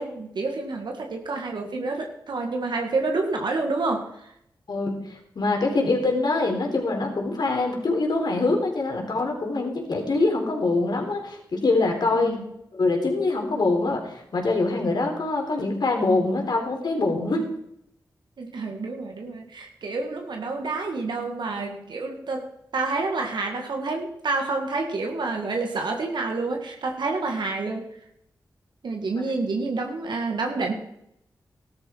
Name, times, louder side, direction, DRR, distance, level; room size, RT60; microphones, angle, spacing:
voice 1, 0.0-4.3 12.1-12.4 18.4-27.9 28.8-30.7, right 3 dB, 75° right, 2 dB, 1.9 m, -28 dB
voice 2, 4.7-12.4 12.7-17.4, left 3 dB, 65° left, 2 dB, 3.8 m, -24 dB
14.5 x 12.0 x 4.6 m, 0.77 s
cardioid pair, 45°, 8 cm